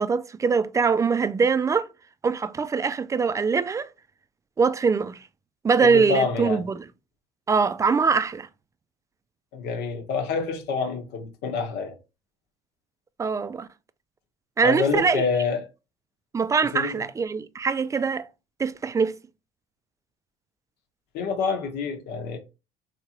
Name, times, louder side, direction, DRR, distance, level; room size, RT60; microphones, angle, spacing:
voice 1, 0.0-1.9 2.2-3.9 4.6-5.2 5.6-6.8 7.5-8.5 13.2-13.7 14.6-15.2 16.3-18.3 18.6-19.2, right 5 dB, 20° right, 0.3 m, -23 dB
voice 2, 5.8-6.6 9.5-11.9 14.6-15.7 16.7-17.0 21.1-22.4, left 5 dB, 65° left, 1.1 m, -27 dB
3.3 x 2.8 x 2.9 m
supercardioid pair, 80°, 18 cm